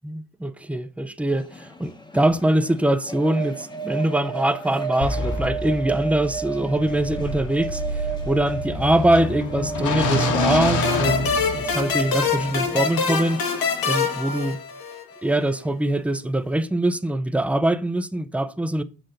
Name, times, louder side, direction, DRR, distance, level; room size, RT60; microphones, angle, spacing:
voice 1, 0.0-13.4 13.8-14.6 15.2-18.8, right 1 dB, 5° right, 0.4 m, -23 dB
sound 1, 1.3-14.6, right 4 dB, 15° left, 0.8 m, -34 dB
sound 2, 5.0-11.9, left 2 dB, 60° left, 1.3 m, -27 dB
sound 3, 10.8-15.2, left 5 dB, 85° left, 1.7 m, -25 dB
7.6 x 3.8 x 6.4 m
wide cardioid pair, 160°, 35 cm